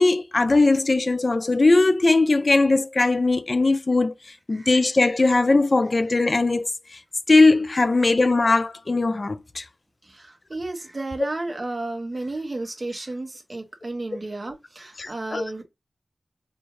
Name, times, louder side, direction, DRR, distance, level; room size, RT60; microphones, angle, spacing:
voice 1, 0.0-4.1 4.5-6.7 7.3-9.6 15.0-15.4, left 3 dB, 50° left, 0.4 m, -19 dB
voice 2, 10.0-15.6, right 2 dB, 45° right, 1.1 m, -32 dB
4.3 x 2.3 x 3.0 m
wide cardioid pair, 65°, 0 cm